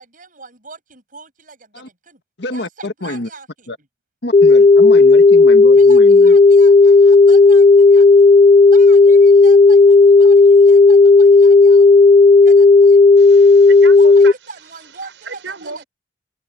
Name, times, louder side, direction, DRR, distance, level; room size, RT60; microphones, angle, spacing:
voice 1, 0.0-2.2 2.5-3.7 5.8-8.3 8.7-12.1 12.4-13.0 13.9-15.9, right 4 dB, 50° right, 7.7 m, -40 dB
voice 2, 2.4-3.3 3.7-3.8 4.2-6.3, left 1 dB, 65° left, 1.8 m, -27 dB
sound 1, 4.3-14.3, left 3 dB, 35° left, 0.4 m, -8 dB
voice 3, 13.2-15.8, right 4 dB, 85° right, 5.4 m, -34 dB
head